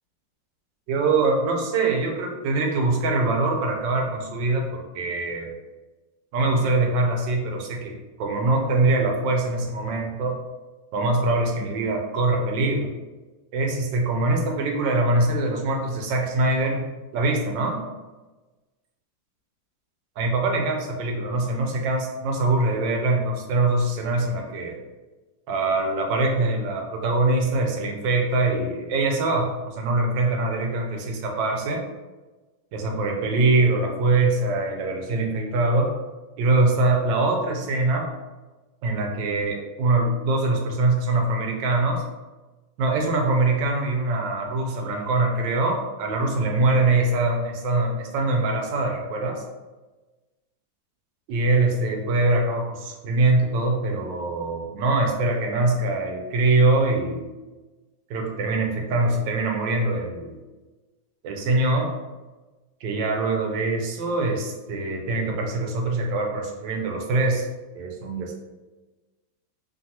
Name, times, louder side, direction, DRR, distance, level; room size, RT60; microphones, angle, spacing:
voice 1, 0.9-5.5 6.3-10.4 10.9-12.9 13.5-16.8 17.1-17.8 20.2-24.8 25.5-31.8 32.7-35.9 36.4-38.1 38.8-42.0 42.8-49.4 51.3-57.3 58.1-60.4 61.2-61.9 62.8-67.5 67.8-68.3, right 2 dB, 80° right, 2 dB, 1.3 m, -23 dB
3.0 x 2.3 x 2.7 m, 1.2 s
omnidirectional pair, 2.0 m